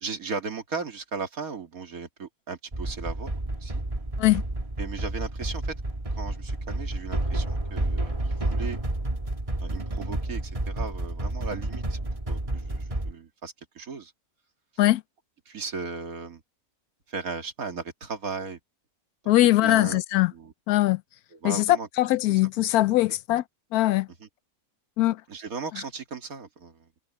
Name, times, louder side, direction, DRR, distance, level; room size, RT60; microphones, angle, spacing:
voice 1, 0.0-3.3 3.6-3.8 4.8-5.7 6.1-8.8 9.6-12.0 12.3-14.1 15.5-16.4 17.1-18.6 19.6-20.0 20.3-20.5 21.3-21.9 22.3-22.4 24.2-24.3 25.3-26.9, right 4 dB, 70° right, 2.5 m, -36 dB
sound 1, 2.7-13.1, right 1 dB, 25° right, 1.9 m, -30 dB
voice 2, 19.3-20.3 20.7-21.0 21.4-21.6 22.0-23.4 23.7-24.1 25.0-25.2, left 16 dB, 85° left, 1.1 m, -21 dB
omnidirectional pair, 1.5 m